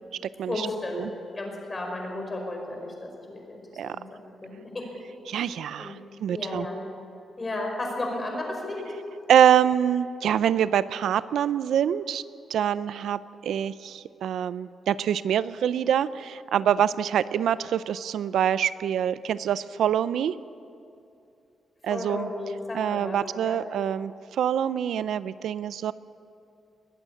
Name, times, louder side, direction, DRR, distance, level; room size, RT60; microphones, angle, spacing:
voice 1, 0.5-4.9 5.3-6.0 6.3-6.8 7.4-8.8 21.9-23.6, left 2 dB, 25° left, 1 dB, 5.2 m, -34 dB
voice 2, 5.3-6.7 9.3-12.2 12.5-20.3 21.8-22.3 22.7-25.9, right 9 dB, 80° right, 15 dB, 0.5 m, -25 dB
21.0 x 15.5 x 9.9 m, 2.6 s
wide cardioid pair, 155°, 0 cm